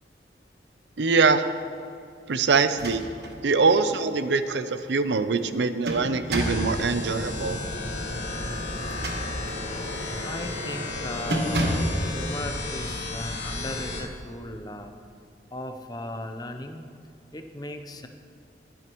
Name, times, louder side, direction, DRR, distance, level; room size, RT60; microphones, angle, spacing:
voice 1, 1.0-1.5 2.3-3.0 3.4-7.6, right 4 dB, 85° right, 11 dB, 0.6 m, -23 dB
sound 1, 2.6-3.4 3.8-3.9 5.4-6.7 8.8-9.7 10.2-10.4 10.7-10.9 11.3-12.0, right 1 dB, 65° right, 1.3 m, -29 dB
sound 2, 6.3-14.0, left 2 dB, 85° left, 2.8 m, -33 dB
voice 2, 10.2-14.9 15.5-16.8 17.3-18.1, left 1 dB, 20° left, 6 dB, 0.7 m, -37 dB
20.0 x 9.2 x 3.1 m, 2.4 s
head